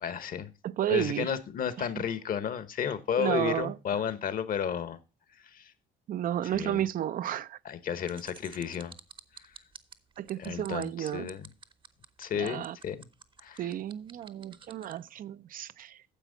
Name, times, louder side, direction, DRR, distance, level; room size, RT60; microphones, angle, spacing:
voice 1, 0.0-0.5 0.9-5.0 5.4-5.7 6.4-6.8 7.6-8.9 10.4-11.5 12.2-13.1 13.4-13.7, left 8 dB, 55° left, 1.1 m, -33 dB
voice 2, 0.6-1.3 1.8-2.0 3.2-3.8 6.1-7.6 10.2-11.3 12.3-12.8 13.6-16.0, right 11 dB, 55° right, 0.5 m, -32 dB
sound 1, 8.1-15.0, right 5 dB, 30° right, 0.8 m, -50 dB
10.0 x 7.1 x 3.9 m
cardioid pair, 90°, 17 cm